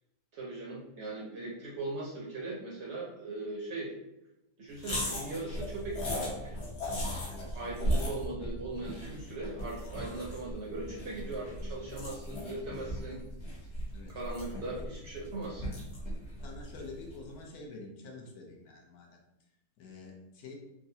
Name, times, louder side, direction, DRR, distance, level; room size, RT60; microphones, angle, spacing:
voice 1, 0.3-3.9 4.6-6.5 6.9-7.1 7.5-13.2 14.1-15.7, right 2 dB, 60° right, -4 dB, 0.8 m, -39 dB
sound 1, 4.8-17.3, equal, 50° left, 1.1 m, -37 dB
voice 2, 16.4-19.2 19.8-20.5, left 3 dB, 75° left, 0 dB, 1.1 m, -47 dB
3.6 x 2.0 x 2.7 m, 0.94 s
omnidirectional pair, 1.6 m